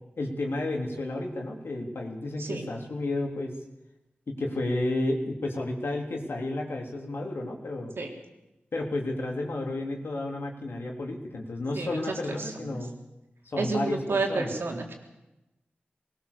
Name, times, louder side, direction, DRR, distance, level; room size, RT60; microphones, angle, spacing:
voice 1, 0.2-3.5 4.3-7.9 8.7-12.9 13.5-14.5, left 2 dB, 85° left, 1 dB, 3.5 m, -32 dB
voice 2, 11.8-12.7 13.6-14.9, right 3 dB, 85° right, 2 dB, 3.5 m, -30 dB
21.0 x 19.5 x 7.0 m, 0.97 s
wide cardioid pair, 65°, 4 cm